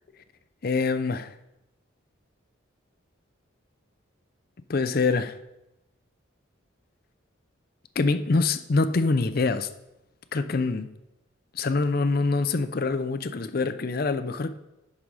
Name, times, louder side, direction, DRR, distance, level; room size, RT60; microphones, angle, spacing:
voice 1, 0.6-1.3 4.7-5.4 8.0-9.7 10.3-10.9 11.5-14.6, left 3 dB, 45° left, 0.5 m, -25 dB
11.5 x 5.1 x 4.8 m
head